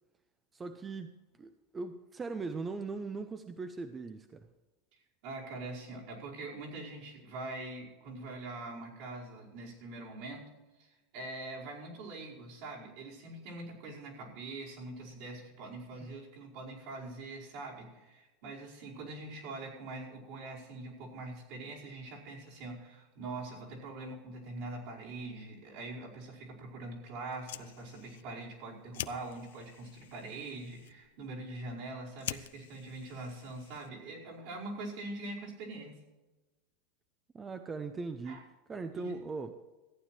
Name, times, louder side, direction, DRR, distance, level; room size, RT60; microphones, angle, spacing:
voice 1, 0.5-4.5 16.0-16.1 37.3-38.4 38.7-39.6, right 4 dB, 20° right, 9 dB, 0.7 m, -40 dB
voice 2, 4.9-10.5 10.8-36.0 38.2-38.4 38.9-39.1, right 2 dB, 65° right, -4 dB, 5.1 m, -43 dB
Fire, 27.2-34.2, left 13 dB, 85° left, 0.5 m, -47 dB
14.5 x 9.3 x 4.5 m, 1.2 s
supercardioid pair, 130°, 0 cm